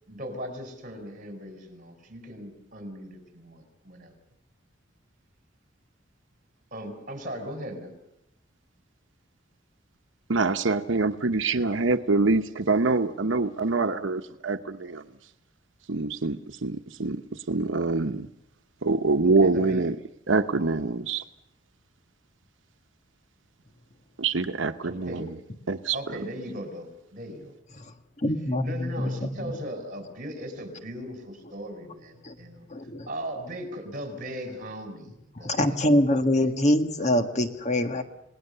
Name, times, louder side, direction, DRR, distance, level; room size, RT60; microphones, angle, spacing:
voice 1, 0.1-4.1 6.7-7.9 19.2-19.9 24.8-25.2 25.9-27.5 28.3-32.7 33.1-36.5, equal, 45° right, 6 dB, 4.8 m, -38 dB
voice 2, 10.3-15.0 15.9-17.2 17.5-18.3 18.8-20.0 20.3-21.2 24.2-25.3 25.7-26.0, right 3 dB, 90° right, 9 dB, 0.9 m, -25 dB
voice 3, 27.8-29.6 32.2-32.3 32.7-33.1 35.4-38.0, left 1 dB, 40° left, 7 dB, 1.6 m, -25 dB
28.5 x 19.0 x 6.8 m, 0.83 s
head